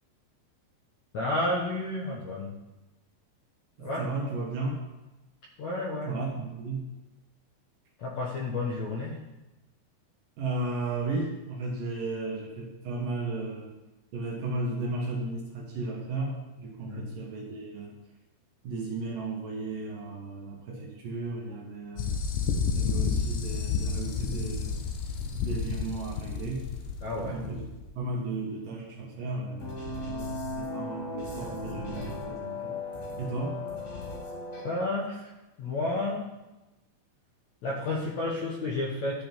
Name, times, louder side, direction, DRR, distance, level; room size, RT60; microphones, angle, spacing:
voice 1, 1.1-2.6 3.8-4.1 5.6-6.1 8.0-9.2 16.9-17.2 20.7-20.8 27.0-27.4 34.6-35.3 35.6-36.3 37.6-39.2, left 2 dB, 65° left, -4 dB, 1.8 m, -31 dB
voice 2, 3.8-4.7 6.1-6.9 10.4-13.7 14.1-17.9 18.6-22.2 22.7-24.9 25.3-26.6 27.2-27.7 28.0-33.6, right 3 dB, 60° right, -2 dB, 2.7 m, -35 dB
sound 1, 22.0-27.8, left 5 dB, 80° left, 1.8 m, -30 dB
sound 2, 29.6-34.6, left 2 dB, 45° left, 2.7 m, -36 dB
12.0 x 5.1 x 5.3 m, 1.0 s
omnidirectional pair, 5.0 m